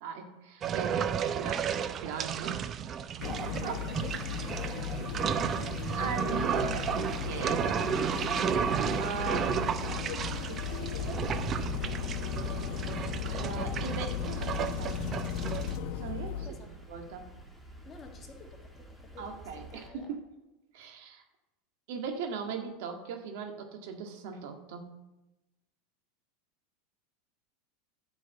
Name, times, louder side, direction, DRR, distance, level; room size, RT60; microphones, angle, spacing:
voice 1, 0.0-2.6 3.3-3.8 4.4-4.6 5.9-7.9 9.0-9.6 10.3-11.3 13.3-15.0 16.0-17.3 19.2-20.2 20.7-21.2 21.9-24.9, right 6 dB, 70° right, 4 dB, 1.7 m, -39 dB
sound 1, 0.6-15.8, right 8 dB, 35° right, 0.6 m, -33 dB
voice 2, 0.7-2.5 3.5-5.6 16.4-16.8 17.8-20.1, left 4 dB, 25° left, 2 dB, 1.8 m, -53 dB
sound 2, 3.2-16.5, left 8 dB, 60° left, 1.0 m, -36 dB
sound 3, 5.7-19.9, right 1 dB, ahead, 1.8 m, -52 dB
10.0 x 5.3 x 8.0 m, 1.0 s
supercardioid pair, 120°, 0 cm